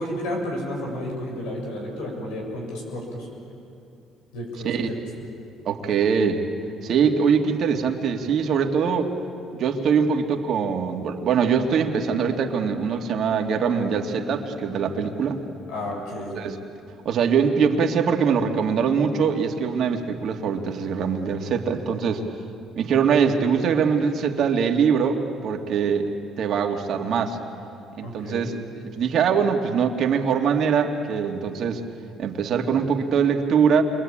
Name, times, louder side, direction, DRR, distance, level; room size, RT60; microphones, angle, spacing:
voice 1, 0.0-3.3 4.3-5.0 15.7-16.4 28.0-28.5, left 1 dB, 90° left, 0 dB, 7.3 m, -32 dB
voice 2, 5.7-6.5 6.8-9.1 9.5-15.4 16.3-16.6 17.0-22.2 22.8-27.4 28.0-28.6 28.9-31.8 32.2-33.8, right 6 dB, 60° right, 3 dB, 2.3 m, -22 dB
sound 1, 11.3-17.2, left 7 dB, 10° left, 4.5 m, -43 dB
28.5 x 24.0 x 8.8 m, 2.6 s
supercardioid pair, 85°, 0 cm